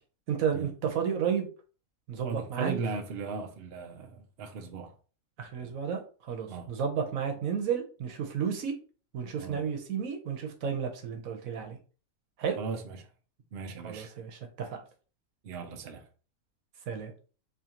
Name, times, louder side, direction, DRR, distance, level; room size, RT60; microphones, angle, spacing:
voice 1, 0.3-1.5 2.1-2.8 5.4-8.7 9.1-11.8 12.4-12.6 13.8-14.8 16.9-17.1, right 7 dB, 80° right, 1.2 m, -32 dB
voice 2, 2.2-4.9 5.6-5.7 6.5-6.7 9.4-9.6 12.6-13.0 13.5-14.1 15.4-16.0, right 5 dB, 55° right, 0.7 m, -37 dB
3.7 x 3.1 x 2.9 m
omnidirectional pair, 1.4 m